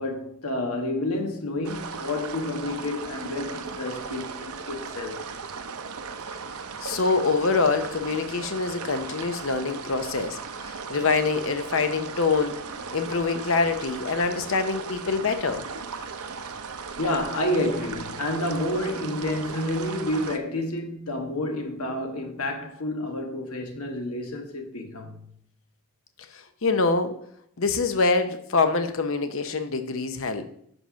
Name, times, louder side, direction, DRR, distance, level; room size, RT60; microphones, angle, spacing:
voice 1, 0.0-5.2 17.0-25.2, left 1 dB, 90° left, 1.3 m, -29 dB
sound 1, 1.6-20.4, right 5 dB, 80° right, 0.7 m, -37 dB
voice 2, 6.8-12.6 12.9-15.7 26.3-27.2 27.6-30.5, left 4 dB, 65° left, 0.8 m, -25 dB
5.7 x 5.4 x 5.7 m
head